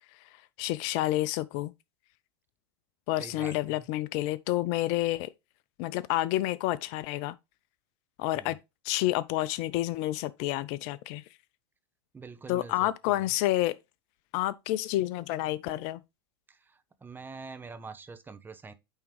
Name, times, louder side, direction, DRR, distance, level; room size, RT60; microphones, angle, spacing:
voice 1, 0.6-1.7 3.1-5.3 5.8-7.3 8.2-8.6 8.8-11.2 12.5-13.7 14.3-16.0, left 16 dB, 50° left, 0.4 m, -29 dB
voice 2, 3.2-3.9 8.4-8.5 12.1-13.3 16.5-18.7, right 4 dB, 15° right, 0.7 m, -45 dB
8.9 x 3.6 x 3.1 m
hypercardioid pair, 95°, 14 cm